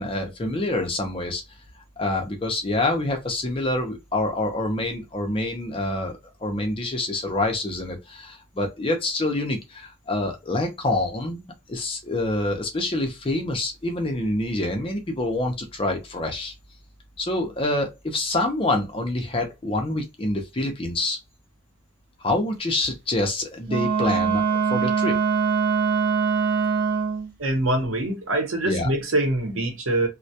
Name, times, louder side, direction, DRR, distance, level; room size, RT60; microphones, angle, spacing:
voice 1, 0.0-1.4 2.0-16.5 17.2-21.2 22.2-25.1 28.6-28.9, left 2 dB, 25° left, 0.5 m, -26 dB
Wind instrument woodwind instrument, 23.7-27.3, right 6 dB, 45° right, 0.3 m, -23 dB
voice 2, 27.4-30.1, right 1 dB, 90° right, 0.8 m, -24 dB
2.2 x 2.1 x 2.7 m
head